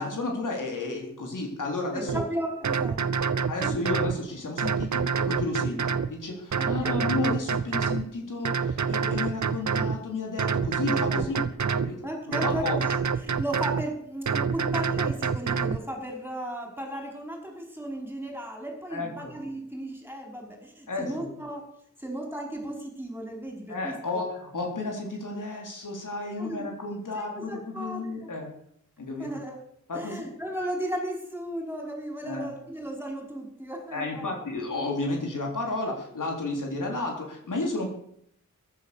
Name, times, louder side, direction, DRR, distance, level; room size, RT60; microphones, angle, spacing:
voice 1, 0.0-2.2 3.5-12.8 18.9-19.3 20.9-21.3 23.7-28.5 29.0-29.4 29.9-30.3 32.2-32.5 33.9-37.9, left 2 dB, 80° left, 1 dB, 3.8 m, -32 dB
voice 2, 1.9-3.2 3.6-3.7 6.6-7.0 11.1-11.3 12.0-21.6 22.0-24.3 26.4-26.7 27.2-28.0 29.2-29.6 29.9-34.3, right 1 dB, 5° right, 1 dB, 5.2 m, -35 dB
sound 1, 2.1-2.2 2.6-4.2 4.6-6.1 6.5-8.0 8.4-10.0 10.4-11.9 12.3-13.8 14.3-15.8, right 6 dB, 65° right, 0.9 m, -27 dB
15.0 x 11.0 x 6.8 m, 0.70 s
wide cardioid pair, 75°, 31 cm